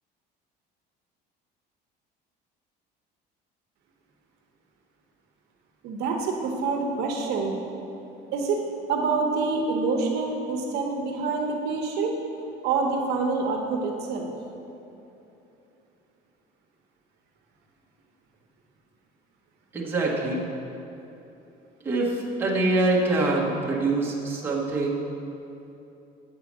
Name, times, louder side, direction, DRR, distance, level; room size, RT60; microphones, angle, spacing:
voice 1, 5.8-7.6 8.3-8.6 8.9-12.2 12.6-14.3, right 4 dB, 60° right, 1 dB, 1.0 m, -26 dB
voice 2, 19.7-20.4 21.8-25.0, right 2 dB, 10° right, -5 dB, 1.1 m, -25 dB
8.3 x 4.7 x 7.3 m, 2.9 s
cardioid pair, 175°, 19 cm